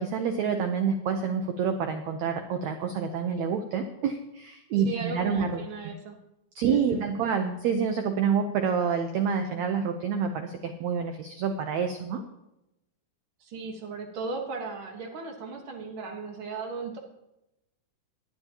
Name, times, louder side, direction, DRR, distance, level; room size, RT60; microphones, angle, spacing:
voice 1, 0.0-5.9 6.5-12.2, right 6 dB, 85° right, 5 dB, 1.6 m, -28 dB
voice 2, 4.8-6.2 6.6-7.2 13.4-17.0, right 4 dB, 70° right, 2 dB, 1.2 m, -37 dB
19.0 x 10.5 x 2.9 m, 0.89 s
omnidirectional pair, 4.2 m